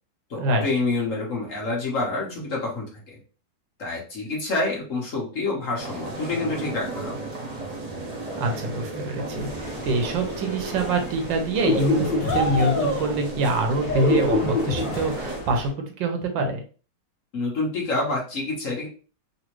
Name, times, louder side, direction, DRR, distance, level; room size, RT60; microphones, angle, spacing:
voice 1, 0.3-3.2 3.8-7.3 17.3-18.9, left 3 dB, 50° left, -3 dB, 1.3 m, -27 dB
sound 1, 5.8-15.4, right 2 dB, 55° right, 0.4 m, -34 dB
voice 2, 8.3-15.7 16.0-16.6, right 2 dB, 80° right, 5 dB, 1.5 m, -25 dB
sound 2, 9.3-15.7, left 2 dB, 90° left, 0.4 m, -27 dB
4.0 x 2.7 x 3.0 m, 0.37 s
omnidirectional pair, 2.0 m